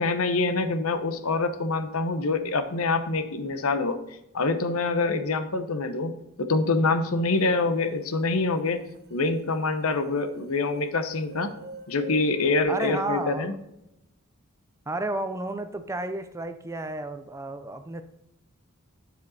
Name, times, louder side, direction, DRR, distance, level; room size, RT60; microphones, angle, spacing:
voice 1, 0.0-4.0 4.3-8.8 9.1-11.5 11.9-13.5, left 3 dB, 80° left, 10 dB, 0.9 m, -25 dB
sound 1, 8.6-8.7 8.9-12.6, right 2 dB, 45° right, 0.8 m, -44 dB
voice 2, 12.7-13.6 14.9-18.0, right 2 dB, 15° right, 9 dB, 0.4 m, -32 dB
9.3 x 5.1 x 4.2 m, 0.85 s
head